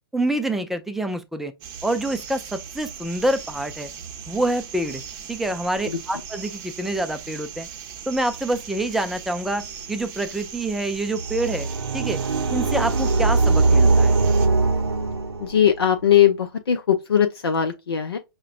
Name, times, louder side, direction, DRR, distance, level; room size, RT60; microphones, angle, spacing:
voice 1, 0.1-1.5 1.8-3.9 4.3-5.0 5.3-7.7 8.1-11.7 11.9-12.2 12.5-14.1, right 1 dB, ahead, 0.3 m, -26 dB
sound 1, 1.6-14.5, right 7 dB, 30° right, 0.7 m, -39 dB
sound 2, 11.2-15.8, right 3 dB, 85° right, 0.6 m, -20 dB
voice 2, 15.4-18.2, left 9 dB, 75° left, 0.5 m, -20 dB
5.6 x 2.2 x 2.4 m
figure-of-eight pair, 115°, 13 cm